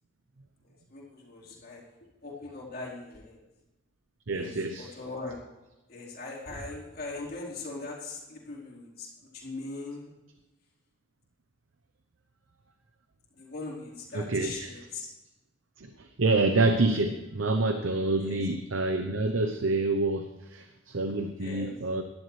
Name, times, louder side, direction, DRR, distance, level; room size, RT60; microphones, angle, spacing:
voice 1, 0.9-1.8 2.2-3.4 4.3-5.4 5.9-9.1 9.3-10.1 13.3-15.1 18.2-18.4 21.4-21.7, left 3 dB, 50° left, -5 dB, 4.1 m, -40 dB
voice 2, 4.3-4.9 14.1-14.7 15.8-22.0, right 2 dB, 80° right, 7 dB, 0.8 m, -27 dB
17.5 x 11.5 x 3.3 m, 1.1 s
head